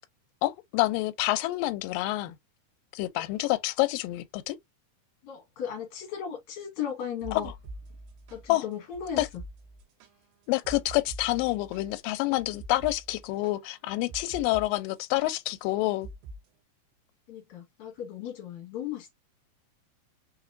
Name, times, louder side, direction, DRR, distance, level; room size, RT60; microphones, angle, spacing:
voice 1, 0.4-2.4 2.9-4.6 8.5-8.6 9.2-9.3 10.5-16.1, left 18 dB, 85° left, 2.2 m, -28 dB
voice 2, 5.2-7.5 8.3-9.2 17.3-19.1, left 8 dB, 65° left, 2.4 m, -36 dB
sound 1, 7.0-14.7 15.0-15.3 16.0-16.4, right 2 dB, 85° right, 2.7 m, -45 dB
5.6 x 2.9 x 2.6 m
omnidirectional pair, 3.9 m